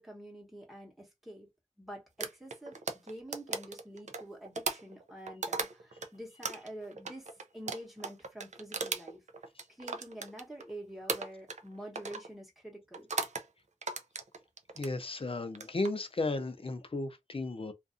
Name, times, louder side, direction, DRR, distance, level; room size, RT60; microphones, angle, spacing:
voice 1, 0.0-1.5 1.8-9.2 9.7-13.1, right 1 dB, ahead, 1.0 m, -47 dB
sound 1, 2.2-6.1 6.4-10.7 11.1-11.7 12.0-12.3 12.9-13.5 13.8-14.9 15.5-15.9, right 4 dB, 60° right, 0.4 m, -37 dB
voice 2, 14.8-17.7, left 2 dB, 45° left, 0.6 m, -34 dB
2.5 x 2.4 x 2.5 m
wide cardioid pair, 50°, 14 cm